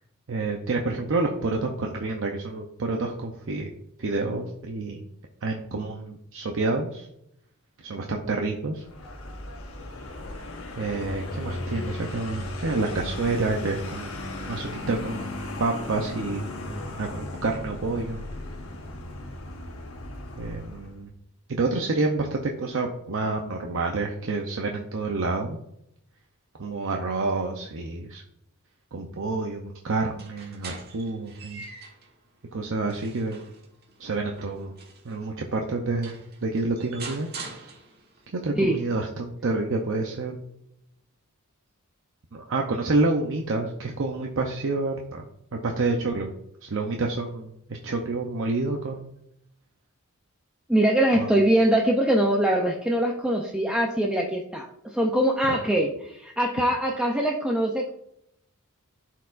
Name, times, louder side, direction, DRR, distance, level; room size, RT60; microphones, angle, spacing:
voice 1, 0.3-3.7 4.0-5.0 5.4-7.1 7.8-8.8 10.8-14.1 14.5-16.4 17.0-18.3 20.4-21.1 21.5-25.6 26.6-28.2 28.9-31.6 32.5-33.4 34.0-34.7 35.0-37.3 38.3-40.4 42.3-45.2 45.5-46.3 46.6-49.1 51.1-51.3, right 3 dB, 65° right, 2 dB, 0.7 m, -28 dB
Vehicle, 8.8-21.0, left 1 dB, 70° left, 1.2 m, -36 dB
sound 1, 30.0-32.1 32.6-35.2 35.7-35.8 36.0-38.2, right 4 dB, 50° right, 1.4 m, -43 dB
voice 2, 50.7-57.9, right 1 dB, 5° right, 0 dB, 0.6 m, -23 dB
11.5 x 4.6 x 2.5 m, 0.78 s
head